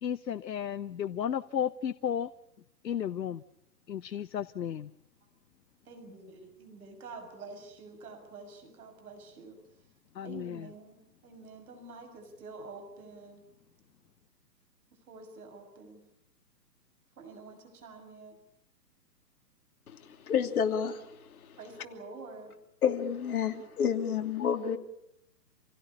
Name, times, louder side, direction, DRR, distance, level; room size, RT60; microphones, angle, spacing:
voice 1, 0.0-2.3 2.8-3.4 3.9-4.9 10.1-10.7, left 9 dB, 85° left, 14 dB, 0.9 m, -33 dB
voice 2, 5.9-9.6 10.2-13.5 15.1-16.1 17.2-18.4 21.6-22.6, right 3 dB, 60° right, 4 dB, 7.1 m, -48 dB
voice 3, 20.3-21.0 22.8-24.8, left 7 dB, 60° left, 6 dB, 3.0 m, -29 dB
28.0 x 17.0 x 8.8 m, 0.79 s
hypercardioid pair, 145°, 49 cm